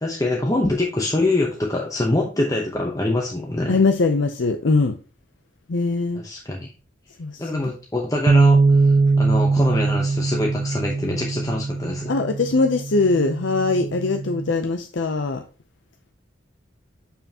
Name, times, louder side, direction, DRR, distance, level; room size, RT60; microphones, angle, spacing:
voice 1, 0.0-3.8 6.1-6.7 7.4-12.1, left 2 dB, 15° left, 0.8 m, -24 dB
voice 2, 3.7-5.0 5.7-6.2 7.2-7.7 12.1-15.4, left 3 dB, 65° left, 0.6 m, -21 dB
sound 1, 8.3-14.5, right 3 dB, 40° right, 0.4 m, -21 dB
6.9 x 5.7 x 2.8 m
head